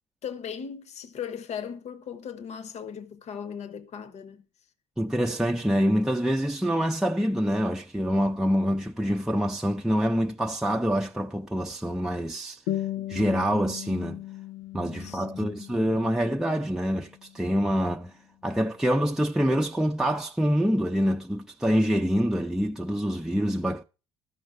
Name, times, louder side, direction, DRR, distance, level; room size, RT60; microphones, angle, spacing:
voice 1, 0.2-4.4 13.0-13.1 15.0-15.7, left 7 dB, 55° left, 1.2 m, -38 dB
voice 2, 5.0-12.6 13.1-14.2 14.7-18.1 18.4-23.8, equal, 5° right, 0.7 m, -26 dB
sound 1, 12.7-17.7, left 13 dB, 85° left, 0.5 m, -37 dB
13.0 x 5.3 x 6.5 m
hypercardioid pair, 60°, 13 cm